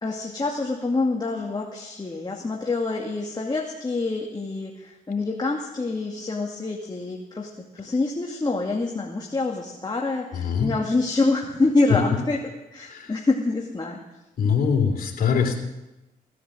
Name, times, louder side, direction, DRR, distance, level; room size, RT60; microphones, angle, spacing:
voice 1, 0.0-12.4 12.7-14.0, left 3 dB, 30° left, -1 dB, 2.3 m, -26 dB
voice 2, 10.3-10.7 12.9-13.1 14.4-15.6, left 6 dB, 75° left, 1 dB, 3.1 m, -23 dB
17.0 x 10.0 x 7.6 m, 1.0 s
cardioid pair, 65°, 16 cm